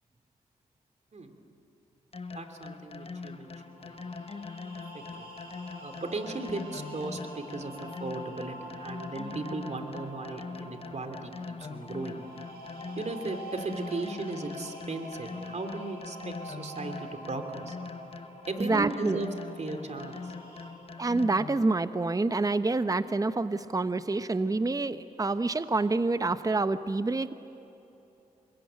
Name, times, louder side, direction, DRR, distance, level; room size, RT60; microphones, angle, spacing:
sound 1, 2.1-21.8, left 4 dB, 40° left, 1.1 m, -42 dB
voice 1, 2.3-4.1 4.9-5.3 5.8-12.2 13.0-17.8 18.5-19.3 19.6-20.3, right 3 dB, 45° right, 6 dB, 3.0 m, -37 dB
sound 2, 3.4-20.7, equal, 90° right, 4.7 m, -46 dB
voice 2, 18.6-19.2 21.0-27.3, right 3 dB, 20° right, 12 dB, 0.9 m, -27 dB
26.5 x 21.0 x 9.0 m, 2.9 s
supercardioid pair, 45°, 16 cm